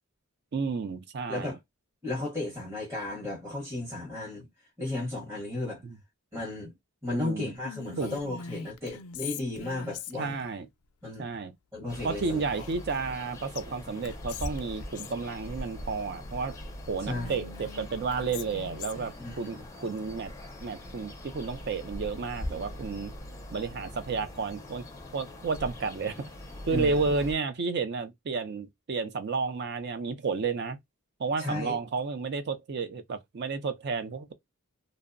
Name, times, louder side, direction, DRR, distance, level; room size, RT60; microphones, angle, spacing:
voice 1, 0.5-1.5 5.8-6.0 7.1-7.5 8.0-8.1 10.2-10.7 11.2-11.5 12.0-16.6 16.9-20.3 20.6-23.1 23.5-24.8 25.1-26.2 26.7-30.8 31.2-34.3, right 4 dB, 50° right, 0.4 m, -31 dB
voice 2, 1.3-1.6 2.0-4.5 4.8-5.8 6.3-6.8 7.0-10.4 11.0-11.3 11.7-12.7 14.3-14.4 17.0-17.4 19.2-19.7 26.7-27.1 31.4-31.8, left 2 dB, 10° right, 0.8 m, -34 dB
Whispering, 7.6-10.5 12.5-13.3 13.5-13.6 14.0-15.2 17.0-19.1, left 7 dB, 80° left, 0.4 m, -42 dB
sound 1, 11.9-27.3, left 1 dB, 15° left, 0.4 m, -42 dB
2.6 x 2.0 x 2.4 m
head